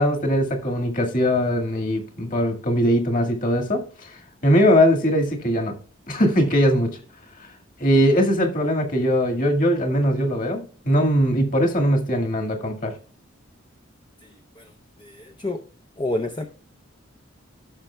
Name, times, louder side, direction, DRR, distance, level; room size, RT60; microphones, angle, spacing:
voice 1, 0.0-5.7 6.1-6.9 7.8-12.9, equal, 40° left, 1.9 m, -21 dB
voice 2, 14.2-14.7 15.0-15.6 16.0-16.4, left 1 dB, 25° left, 0.6 m, -29 dB
14.5 x 6.3 x 2.2 m
head